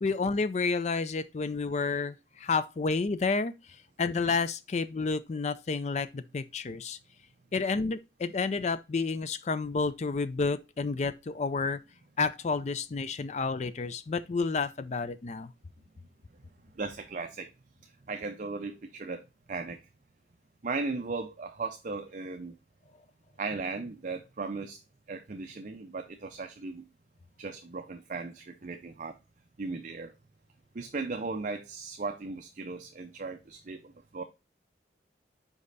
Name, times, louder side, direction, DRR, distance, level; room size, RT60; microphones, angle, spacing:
voice 1, 0.0-3.5 4.0-7.0 7.5-11.8 12.2-15.5, left 4 dB, 40° left, 0.4 m, -30 dB
voice 2, 16.7-17.5 18.1-19.8 20.6-22.6 23.4-24.8 25.1-26.8 27.4-29.1 29.6-30.1 30.7-34.2, right 3 dB, 45° right, 0.5 m, -37 dB
5.3 x 4.9 x 3.9 m
head